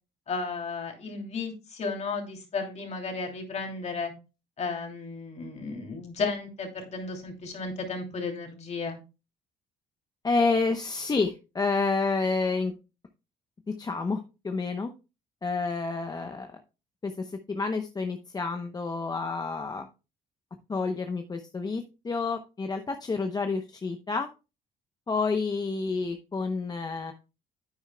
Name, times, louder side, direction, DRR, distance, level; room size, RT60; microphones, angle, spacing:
voice 1, 0.3-4.1 4.6-9.0, left 4 dB, 40° left, 3 dB, 2.8 m, -34 dB
voice 2, 10.2-12.7 13.7-14.9 15.4-16.6 17.0-19.9 20.7-24.3 25.1-27.1, left 4 dB, 25° left, 6 dB, 0.8 m, -29 dB
9.8 x 8.8 x 2.2 m, 0.29 s
cardioid pair, 110°, 17 cm